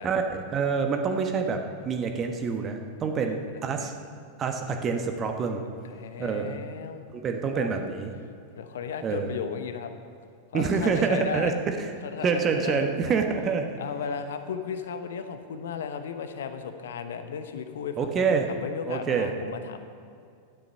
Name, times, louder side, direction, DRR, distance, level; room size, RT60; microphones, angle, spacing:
voice 1, 0.0-3.9 4.4-5.6 6.2-6.6 7.1-8.1 9.0-9.4 10.5-11.5 12.2-13.7 18.0-18.5 18.9-19.3, right 5 dB, 25° right, 5 dB, 1.1 m, -27 dB
voice 2, 3.1-3.9 4.5-4.7 5.8-7.1 7.5-7.7 8.6-9.9 10.5-11.6 11.9-13.2 13.8-19.9, left 7 dB, 60° left, 9 dB, 0.9 m, -35 dB
12.5 x 10.5 x 5.7 m, 2.4 s
figure-of-eight pair, 90°, 0 cm